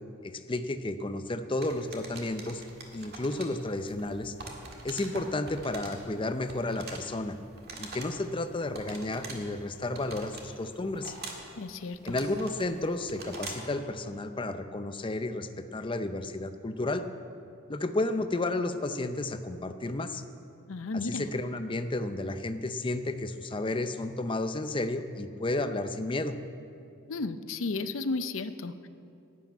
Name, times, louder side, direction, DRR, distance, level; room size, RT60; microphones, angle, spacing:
voice 1, 0.2-2.6 2.9-4.3 4.8-7.3 7.8-11.1 12.1-17.0 17.7-20.2 21.0-26.4, left 2 dB, 25° left, 9 dB, 0.5 m, -32 dB
sound 1, 1.6-13.8, right 3 dB, 50° right, 1.8 m, -45 dB
voice 2, 11.6-12.2 20.7-21.3 27.1-28.9, left 3 dB, 65° left, 12 dB, 0.6 m, -33 dB
11.5 x 8.4 x 9.2 m, 2.6 s
head